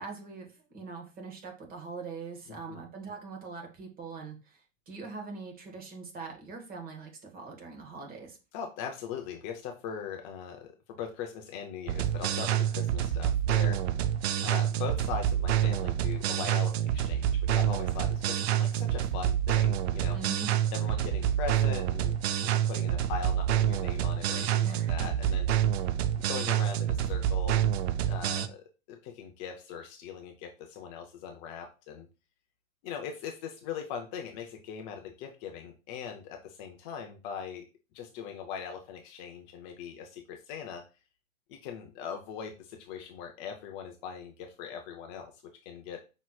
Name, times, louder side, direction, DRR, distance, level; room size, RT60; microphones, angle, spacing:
voice 1, 0.0-4.6 4.9-8.4 20.1-20.5 24.6-24.9 25.3-25.4, right 4 dB, 20° right, 2 dB, 1.3 m, -42 dB
voice 2, 2.5-2.8 8.5-13.8 14.4-20.2 20.7-22.2 22.4-25.8 26.2-27.6 28.1-32.1 32.8-37.7 37.9-40.8 41.5-45.3 45.7-46.0, left 7 dB, 35° left, 3 dB, 0.6 m, -40 dB
sound 1, 11.9-28.5, right 10 dB, 50° right, 0.5 m, -27 dB
5.6 x 3.0 x 2.3 m, 0.31 s
hypercardioid pair, 110°, 40 cm